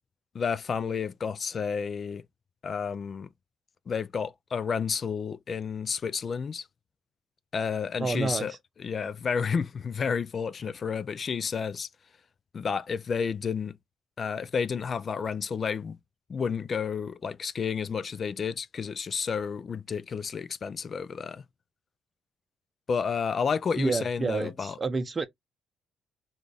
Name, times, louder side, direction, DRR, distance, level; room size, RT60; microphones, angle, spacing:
voice 1, 0.3-2.2 2.6-3.3 3.9-6.7 7.5-8.5 8.8-11.9 12.5-13.7 14.2-16.0 16.3-21.4 22.9-24.8, left 6 dB, 45° left, 0.4 m, -31 dB
voice 2, 8.0-8.6 23.8-25.3, right 3 dB, 30° right, 0.6 m, -29 dB
3.9 x 2.3 x 3.3 m
cardioid pair, 90°, 0 cm